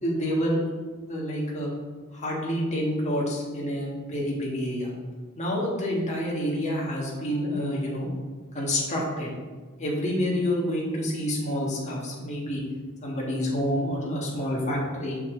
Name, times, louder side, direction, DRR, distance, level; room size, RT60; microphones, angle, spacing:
voice 1, 0.0-0.8 1.1-1.7 2.1-4.9 5.3-8.1 8.5-9.3 9.8-12.6 13.0-15.2, equal, 30° left, -4 dB, 1.7 m, -28 dB
6.8 x 5.8 x 3.8 m, 1.4 s
head